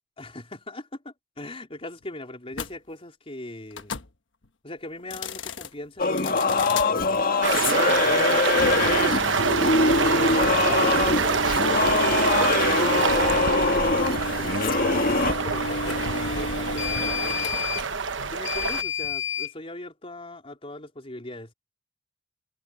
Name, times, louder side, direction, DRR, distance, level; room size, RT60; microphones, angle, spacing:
voice 1, 0.2-4.0 4.6-7.3 7.9-12.1 12.4-17.9 18.3-21.5, left 1 dB, 30° left, 4.1 m, -40 dB
sound 1, 2.5-2.7 3.7-4.1 5.0-5.7 6.2-6.9 8.5-19.5, left 4 dB, 80° left, 1.2 m, -32 dB
Singing / Musical instrument, 6.0-15.3, left 3 dB, 50° left, 1.6 m, -23 dB
sound 2, 7.4-18.8, right 5 dB, 75° right, 1.1 m, -26 dB
head